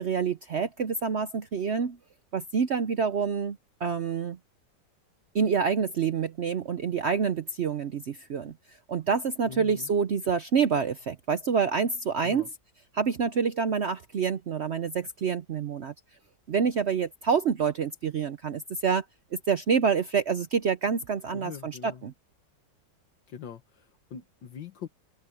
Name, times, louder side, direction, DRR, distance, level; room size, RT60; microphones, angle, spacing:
voice 1, 0.0-2.0 2.3-4.4 5.3-8.5 8.9-12.5 12.9-15.9 16.5-19.0 19.3-22.1, right 6 dB, 70° right, 0.6 m, -27 dB
voice 2, 9.5-9.9 12.2-12.5 21.3-22.0 23.3-24.9, left 8 dB, 75° left, 2.0 m, -43 dB
open air
omnidirectional pair, 2.0 m